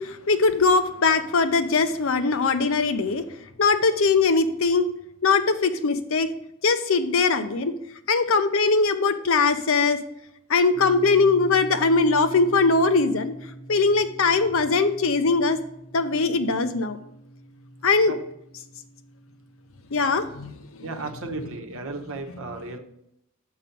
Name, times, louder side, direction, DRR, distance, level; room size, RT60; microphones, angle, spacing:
voice 1, 0.0-3.2 3.6-4.8 5.2-6.3 6.6-7.7 8.1-10.0 10.5-13.3 13.7-15.6 15.9-17.0 17.8-18.1 19.9-20.5, left 4 dB, 70° left, 9 dB, 0.7 m, -21 dB
sound 1, 10.7-20.9, right 1 dB, 90° left, 3.2 m, -44 dB
voice 2, 20.8-22.8, right 3 dB, 65° right, 5 dB, 1.0 m, -34 dB
6.6 x 5.7 x 5.2 m, 0.81 s
head